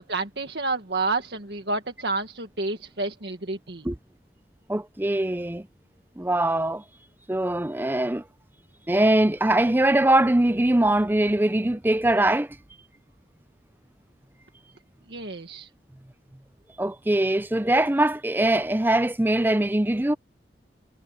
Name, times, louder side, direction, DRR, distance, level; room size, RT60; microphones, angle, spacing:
voice 1, 0.0-3.9 15.1-15.7, right 3 dB, 75° right, 1.7 m, -29 dB
voice 2, 4.7-5.7 6.2-6.8 7.3-8.2 8.9-12.5 16.8-20.1, right 1 dB, 10° right, 0.5 m, -22 dB
head